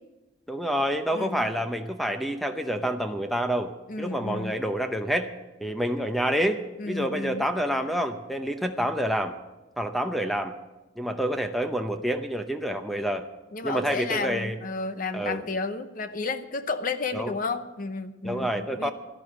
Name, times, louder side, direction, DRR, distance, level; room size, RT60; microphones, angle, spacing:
voice 1, 0.5-5.3 5.6-9.3 9.8-10.5 11.0-13.3 13.6-14.6 15.1-15.5 17.1-17.3 18.2-18.9, equal, ahead, 7 dB, 0.6 m, -28 dB
voice 2, 1.1-1.5 3.9-4.5 6.8-7.4 13.5-18.9, left 3 dB, 45° left, 10 dB, 0.8 m, -32 dB
12.5 x 12.0 x 7.5 m, 1.1 s
head